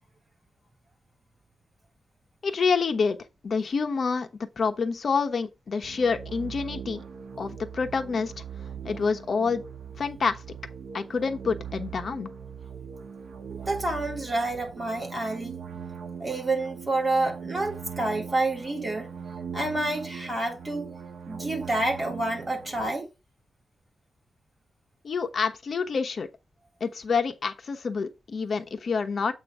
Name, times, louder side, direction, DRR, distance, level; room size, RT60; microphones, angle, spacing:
voice 1, 2.4-3.2 3.4-7.0 7.4-8.4 8.8-9.6 10.0-10.4 10.9-12.3 25.0-26.3 26.8-29.3, left 5 dB, 55° left, 1.0 m, -27 dB
sound 1, 5.8-22.9, right 7 dB, 80° right, 1.0 m, -40 dB
voice 2, 13.5-15.6 16.2-19.1 19.5-20.9 21.3-23.1, right 2 dB, 20° right, 2.9 m, -28 dB
8.0 x 3.1 x 6.1 m
wide cardioid pair, 140°, 0 cm